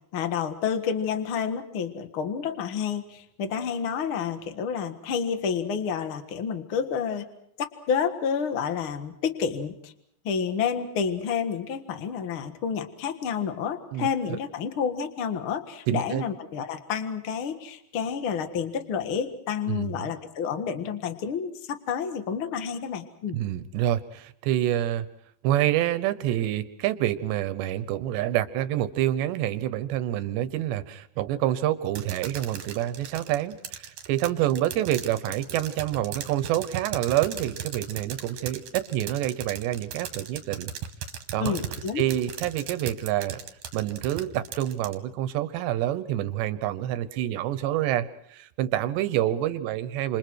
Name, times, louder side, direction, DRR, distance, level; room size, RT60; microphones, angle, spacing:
voice 1, 0.1-7.2 7.9-9.9 10.2-23.4 41.4-42.1, left 7 dB, 85° left, 8 dB, 1.1 m, -29 dB
voice 2, 15.9-16.2 19.7-19.9 23.3-25.1 25.4-40.7 41.3-41.6 42.0-43.4 43.7-50.2, right 13 dB, 75° right, 13 dB, 3.1 m, -27 dB
sound 1, 32.0-44.9, right 9 dB, 60° right, 2.9 m, -37 dB
29.0 x 27.5 x 4.7 m, 0.71 s
omnidirectional pair, 5.2 m